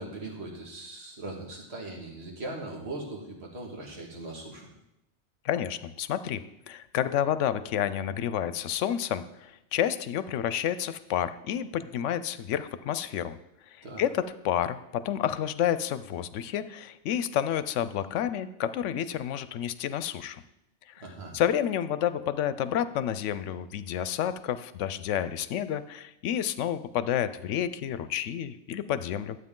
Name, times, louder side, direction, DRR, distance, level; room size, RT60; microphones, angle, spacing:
voice 1, 0.0-4.7 13.8-14.0 21.0-21.3, right 2 dB, 60° right, 0 dB, 2.1 m, -39 dB
voice 2, 5.4-6.4 6.7-13.4 13.8-20.4 20.9-21.0 21.3-29.4, left 10 dB, 80° left, 13 dB, 0.9 m, -30 dB
12.0 x 8.1 x 3.7 m, 0.87 s
omnidirectional pair, 1.2 m